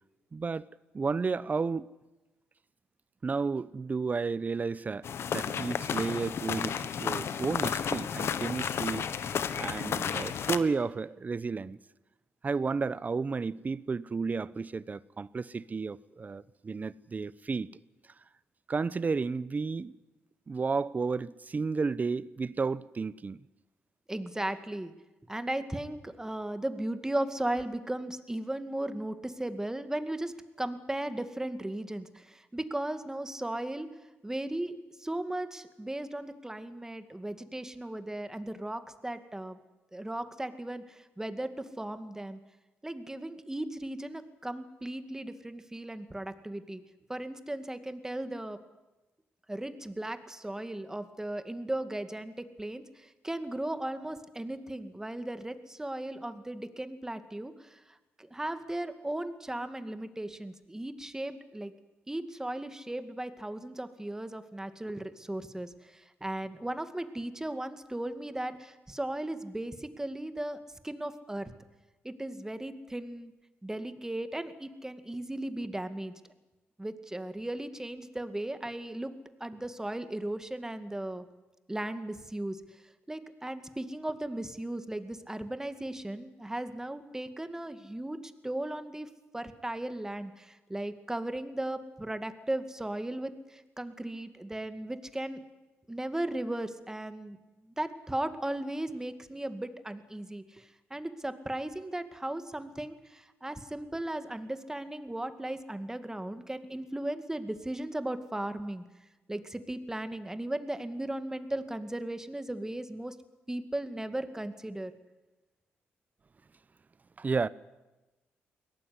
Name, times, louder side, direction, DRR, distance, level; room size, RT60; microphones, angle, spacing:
voice 1, 0.3-0.7 0.9-1.9 3.2-5.1 5.3-9.1 9.6-11.8 12.4-17.7 18.7-20.0 20.5-23.4 117.2-117.5, right 4 dB, 35° right, 0.9 m, -32 dB
sound 1, 5.0-10.6, left 8 dB, 65° left, 1.3 m, -32 dB
voice 2, 24.1-24.9 25.3-33.9 34.2-39.6 39.9-42.4 42.8-46.8 47.1-48.6 49.5-57.8 58.2-61.7 62.1-71.5 72.0-73.3 73.6-76.1 76.8-81.2 81.7-82.6 83.1-95.4 95.9-97.4 97.8-108.8 109.3-113.1 113.5-114.9, right 1 dB, 10° right, 2.2 m, -36 dB
22.5 x 18.0 x 9.7 m
supercardioid pair, 65°, 5 cm